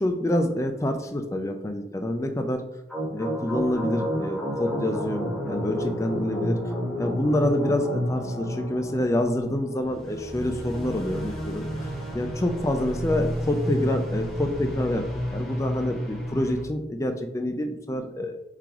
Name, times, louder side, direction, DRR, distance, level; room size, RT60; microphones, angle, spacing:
voice 1, 0.0-2.6 3.1-6.6 7.0-11.7 12.1-18.3, left 1 dB, 15° left, 6 dB, 0.4 m, -27 dB
sound 1, 2.9-16.6, equal, ahead, 1.0 m, -31 dB
4.7 x 3.8 x 2.9 m, 0.88 s
head